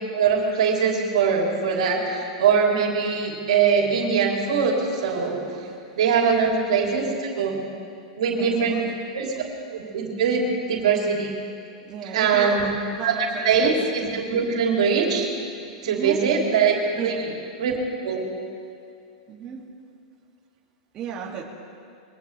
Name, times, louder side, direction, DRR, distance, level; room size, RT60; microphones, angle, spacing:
voice 1, 0.1-5.4 6.0-7.7 8.2-8.9 9.1-9.3 9.7-11.3 12.1-12.6 13.0-15.3 15.8-16.8 17.0-17.3 17.6-17.7 18.0-18.3, right 6 dB, 80° right, -1 dB, 3.5 m, -22 dB
voice 2, 6.2-6.6 8.3-8.8 11.9-13.8 15.8-16.2 16.9-17.3 19.3-19.6 20.9-21.4, right 6 dB, 30° right, -3 dB, 2.4 m, -34 dB
23.5 x 17.5 x 3.4 m, 2.5 s
supercardioid pair, 130°, 3 cm